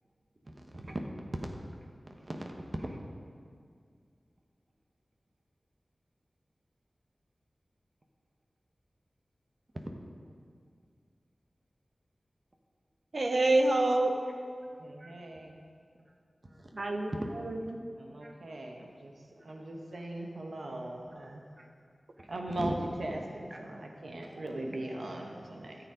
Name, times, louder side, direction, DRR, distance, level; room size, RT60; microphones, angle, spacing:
voice 1, 0.4-1.0 2.1-3.0 15.0-15.1 16.4-16.7 17.5-17.6 18.2-18.3 21.6-21.7 22.2-22.7 23.5-23.6 24.3-25.0, right 1 dB, 40° right, 2 dB, 1.0 m, -41 dB
voice 2, 13.1-14.2 16.7-17.8, right 2 dB, 60° right, 4 dB, 1.0 m, -27 dB
voice 3, 14.8-15.5 18.0-19.1 19.4-21.4 22.3-22.7 23.0-25.8, right 1 dB, 80° right, 1 dB, 1.1 m, -40 dB
13.0 x 7.0 x 5.0 m, 2.2 s
wide cardioid pair, 75°, 0 cm